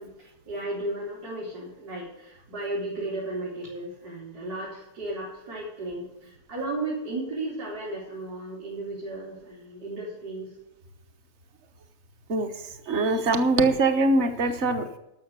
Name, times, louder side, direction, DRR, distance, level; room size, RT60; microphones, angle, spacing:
voice 1, 0.0-10.6, right 2 dB, 75° right, -6 dB, 3.9 m, -34 dB
voice 2, 12.9-15.0, right 2 dB, 50° right, 8 dB, 1.3 m, -23 dB
12.0 x 6.6 x 8.1 m, 0.91 s
omnidirectional pair, 1.7 m